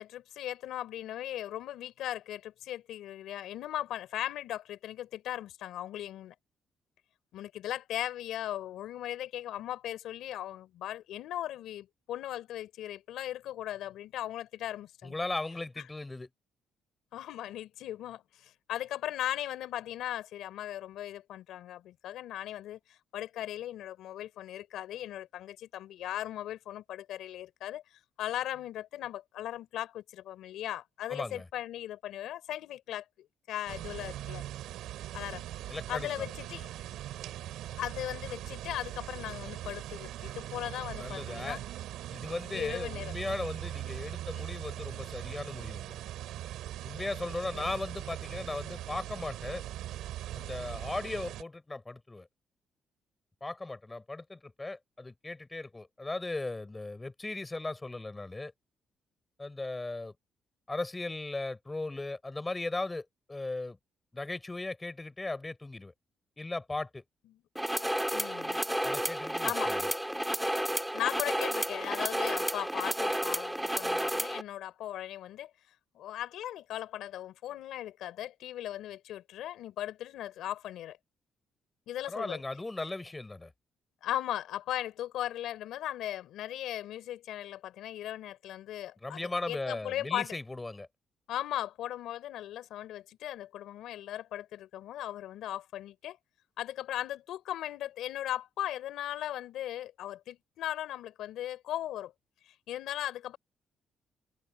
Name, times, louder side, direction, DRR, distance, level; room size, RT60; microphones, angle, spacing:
voice 1, 0.0-6.4 7.3-15.2 17.1-33.1 33.5-34.4 35.1-35.5 35.9-36.7 37.8-41.6 42.5-43.1 47.2-47.3 47.5-47.8 68.1-68.6 69.4-69.8 70.9-75.5 75.9-81.0 81.9-82.4 84.0-89.2 89.5-90.4 91.3-96.2 96.6-102.1 102.5-103.4, left 12 dB, 85° left, 3.5 m, -38 dB
voice 2, 15.0-16.3 31.1-31.5 35.7-36.3 41.0-41.6 42.1-46.0 46.8-49.6 50.3-52.3 53.4-58.5 59.4-60.1 60.7-63.8 64.1-65.9 66.4-67.0 68.8-69.9 82.1-83.5 89.0-90.9, left 2 dB, 20° left, 6.1 m, -37 dB
sound 1, 33.7-51.4, right 13 dB, 85° right, 7.0 m, -41 dB
sound 2, 67.6-74.4, right 1 dB, 5° right, 1.8 m, -31 dB
open air
cardioid pair, 90°, 0 cm